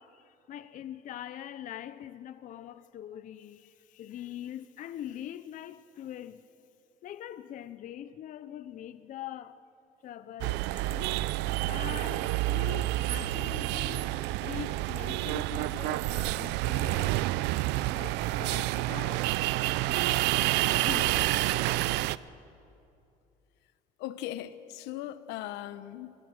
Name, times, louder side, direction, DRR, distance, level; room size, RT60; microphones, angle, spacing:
voice 1, 0.0-6.4 7.0-9.6 10.0-11.2 11.6-17.2 17.9-19.3, left 11 dB, 45° left, 0.6 m, -43 dB
sound 1, 10.4-22.2, right 18 dB, 80° right, 0.5 m, -29 dB
voice 2, 20.9-21.3 24.0-26.1, left 13 dB, 80° left, 1.0 m, -39 dB
24.0 x 20.5 x 6.4 m
cardioid pair, 125°, 18 cm